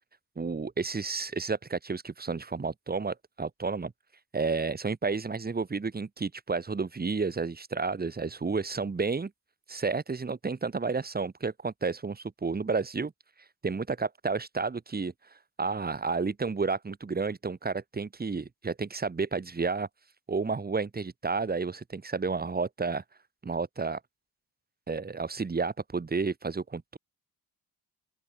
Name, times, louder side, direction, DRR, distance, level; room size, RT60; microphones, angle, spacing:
voice 1, 0.4-3.9 4.3-9.3 9.7-13.1 13.6-15.1 15.6-19.9 20.3-23.0 23.4-24.0 24.9-27.0, right 4 dB, 25° right, 1.0 m, -31 dB
open air
cardioid pair, 80°, 40 cm